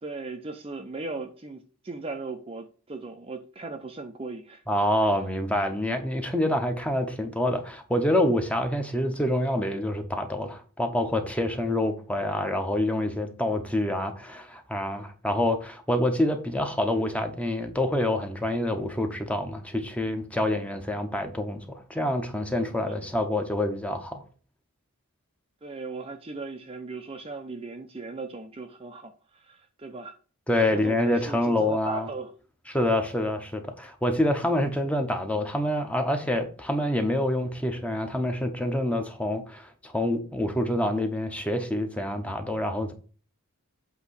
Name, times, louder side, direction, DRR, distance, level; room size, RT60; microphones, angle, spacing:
voice 1, 0.0-4.6 22.8-23.0 25.6-30.1 30.7-32.3, right 3 dB, 25° right, 0.6 m, -37 dB
voice 2, 4.7-24.2 30.5-32.1 32.7-42.9, left 1 dB, 5° left, 0.9 m, -27 dB
8.1 x 3.0 x 6.3 m
head